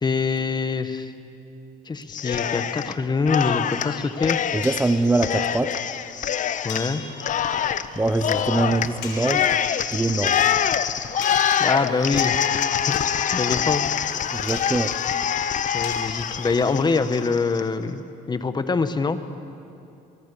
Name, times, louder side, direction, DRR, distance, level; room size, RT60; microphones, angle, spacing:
voice 1, 0.0-1.1 1.9-4.4 6.6-7.0 11.6-12.4 12.9-13.0 13.3-13.8 15.7-18.0 18.3-19.2, left 4 dB, 25° left, 10 dB, 1.3 m, -24 dB
Cheering, 2.1-2.9 3.2-17.6, left 9 dB, 50° left, 1.0 m, -25 dB
voice 2, 4.5-5.8 8.0-9.5 9.9-10.4 14.3-14.9, right 2 dB, 10° right, 10 dB, 0.8 m, -23 dB
sound 1, 4.6-5.0 6.7-7.4 9.0-9.3 11.2-11.7 12.9-13.2 14.5-14.9 15.8-16.1, left 5 dB, 85° left, 4.6 m, -38 dB
24.0 x 24.0 x 6.9 m, 2.7 s
cardioid pair, 110°, 17 cm